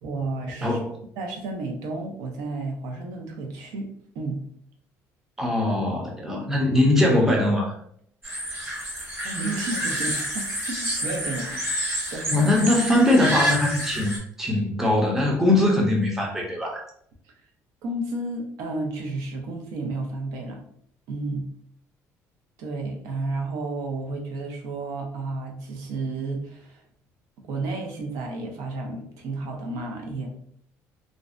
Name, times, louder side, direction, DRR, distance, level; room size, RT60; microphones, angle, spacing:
voice 1, 0.0-0.8 1.2-3.9 4.1-4.4 9.2-11.6 12.1-12.4 17.8-20.6 21.1-21.5 22.6-26.8 27.5-30.4, right 2 dB, 85° right, 2 dB, 0.6 m, -32 dB
voice 2, 0.6-1.0 5.4-7.7 12.3-16.8, left 1 dB, 5° right, -1 dB, 0.4 m, -21 dB
sound 1, 8.2-14.2, equal, 35° right, 1.0 m, -29 dB
2.5 x 2.1 x 2.4 m, 0.65 s
cardioid pair, 180°, 6 cm